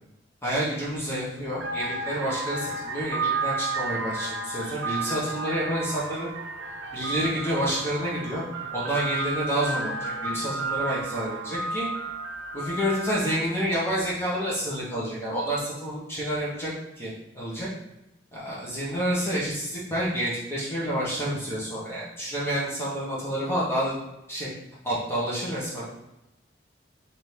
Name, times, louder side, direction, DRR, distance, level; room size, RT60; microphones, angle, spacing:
voice 1, 0.4-6.3 6.9-8.4 8.7-11.9 12.5-16.7 17.0-17.7 18.3-23.9 24.3-24.5 24.8-25.8, equal, 15° left, -7 dB, 1.2 m, -29 dB
sound 1, 1.1-1.2 1.5-13.6, right 3 dB, 90° right, 0.5 m, -32 dB
4.2 x 2.9 x 3.4 m, 0.92 s
head